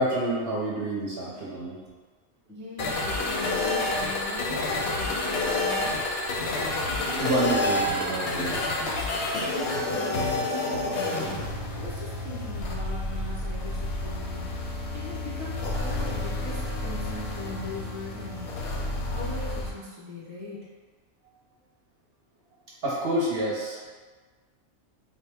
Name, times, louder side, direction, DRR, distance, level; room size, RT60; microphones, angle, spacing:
voice 1, 0.0-1.8 3.1-3.2 7.2-8.6 22.8-23.9, right 1 dB, 55° right, -5 dB, 0.8 m, -28 dB
voice 2, 2.5-5.9 9.4-18.5 19.1-20.6, left 2 dB, 15° left, -8 dB, 0.3 m, -40 dB
sound 1, 2.8-19.7, left 2 dB, 60° left, 0.7 m, -29 dB
4.0 x 2.0 x 3.4 m, 1.4 s
omnidirectional pair, 1.4 m